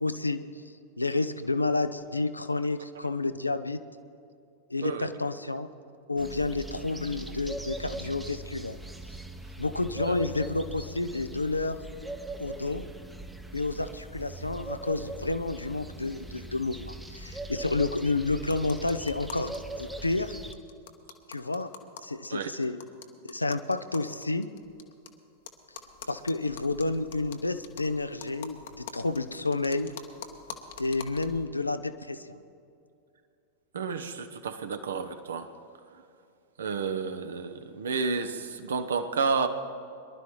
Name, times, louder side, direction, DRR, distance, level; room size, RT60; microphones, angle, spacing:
voice 1, 0.0-0.4 1.0-3.8 4.7-5.7 6.1-8.8 9.6-11.9 12.4-12.8 13.5-20.4 21.3-21.7 22.0-22.8 23.2-24.5 26.1-29.9 30.8-32.4, left 3 dB, 85° left, 10 dB, 0.5 m, -30 dB
sound 1, 6.2-20.5, right 1 dB, 5° right, 0.8 m, -41 dB
sound 2, 18.5-19.6 19.9-20.0 20.2-20.3 20.5-25.1 25.5-31.4, left 7 dB, 60° left, 1.0 m, -46 dB
voice 2, 33.7-35.5 36.6-39.5, right 5 dB, 65° right, 9 dB, 0.9 m, -31 dB
23.5 x 11.5 x 3.2 m, 2.5 s
figure-of-eight pair, 90°, 0 cm